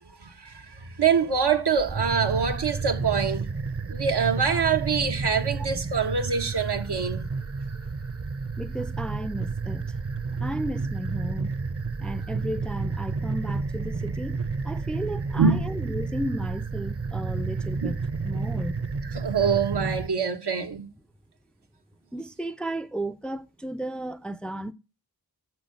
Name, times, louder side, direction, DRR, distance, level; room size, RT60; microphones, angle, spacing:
voice 1, 0.2-3.5 3.9-7.3 15.4-15.7 17.8-17.9 19.1-20.9, right 6 dB, 85° right, 1.1 m, -25 dB
sound 1, 1.7-20.1, right 4 dB, 35° right, 0.7 m, -31 dB
voice 2, 8.6-9.9 10.4-11.5 12.0-18.8 22.1-24.7, right 1 dB, ahead, 0.4 m, -34 dB
6.7 x 6.0 x 6.4 m
wide cardioid pair, 70°, 39 cm